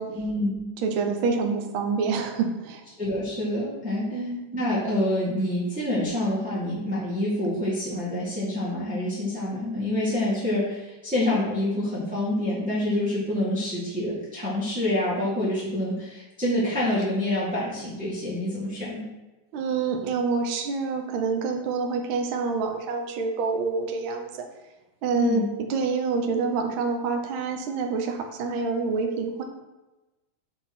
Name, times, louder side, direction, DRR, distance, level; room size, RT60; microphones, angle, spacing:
voice 1, 0.1-0.6 3.0-4.2 4.5-19.1 25.1-25.5, left 1 dB, 5° right, -9 dB, 1.3 m, -27 dB
voice 2, 0.8-2.8 4.1-4.4 19.5-24.3 25.0-25.4 25.7-29.4, right 4 dB, 75° right, 3 dB, 1.2 m, -27 dB
7.9 x 3.6 x 6.0 m, 1.1 s
omnidirectional pair, 3.4 m